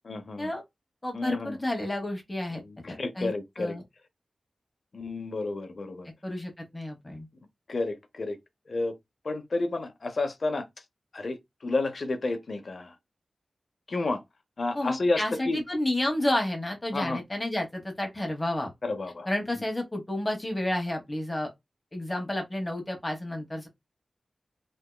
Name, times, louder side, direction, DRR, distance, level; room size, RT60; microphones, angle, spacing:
voice 1, 0.1-0.5 1.1-1.6 2.5-3.8 4.9-6.1 7.7-8.4 8.7-8.9 9.2-10.7 11.1-12.9 13.9-14.2 14.6-15.6 16.9-17.2 18.8-19.3, left 2 dB, 55° left, 0.7 m, -31 dB
voice 2, 1.0-2.6 2.9-3.8 6.2-7.3 14.7-18.7 19.3-21.5 21.9-23.7, left 1 dB, 15° left, 1.2 m, -31 dB
3.5 x 2.8 x 2.2 m
wide cardioid pair, 120°, 0 cm